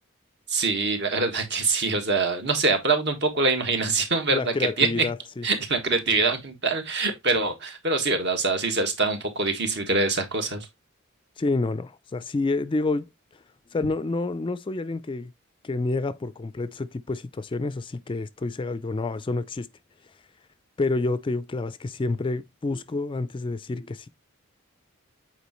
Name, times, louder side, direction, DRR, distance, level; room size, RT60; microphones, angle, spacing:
voice 1, 0.5-5.0 5.4-10.7, right 3 dB, 55° right, 1.6 m, -24 dB
voice 2, 4.3-5.4 11.4-13.1 13.7-15.3 15.6-19.7 20.8-24.1, left 3 dB, 25° left, 0.3 m, -28 dB
8.2 x 4.4 x 3.0 m
head